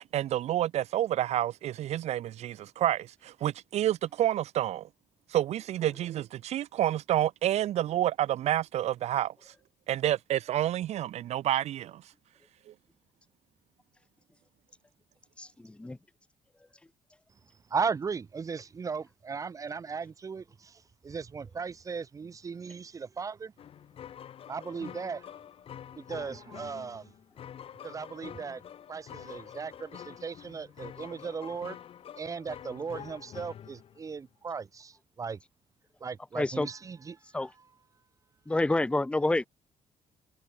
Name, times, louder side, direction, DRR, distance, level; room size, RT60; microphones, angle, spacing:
voice 1, 0.0-4.9 5.3-9.5 9.9-12.0 12.7-12.8, right 12 dB, 60° right, 0.7 m, -29 dB
voice 2, 15.4-16.0 36.4-36.7 37.3-37.5 38.5-39.5, left 2 dB, 10° left, 2.2 m, -28 dB
voice 3, 17.7-23.5 24.5-25.3 26.0-27.1 27.8-28.6 28.9-31.8 32.2-35.4 36.0-37.2, right 5 dB, 25° right, 2.0 m, -37 dB
sound 1, 23.6-34.2, left 9 dB, 50° left, 5.6 m, -47 dB
cardioid pair, 175°, 13 cm